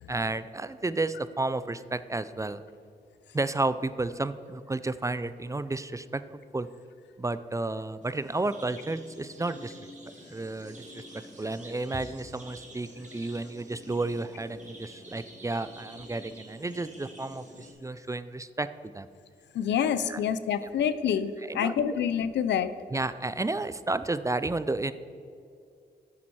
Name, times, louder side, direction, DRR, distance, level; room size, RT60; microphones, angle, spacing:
voice 1, 0.1-2.6 3.3-6.7 7.2-9.8 10.3-11.0 11.4-19.1 20.1-20.2 21.5-21.8 22.9-24.9, right 2 dB, 20° right, 14 dB, 0.4 m, -32 dB
sound 1, 8.0-17.7, equal, 40° right, 2.1 m, -49 dB
voice 2, 19.5-22.7, left 8 dB, 85° left, 13 dB, 0.4 m, -27 dB
8.6 x 7.1 x 4.7 m, 2.4 s
cardioid pair, 50°, 18 cm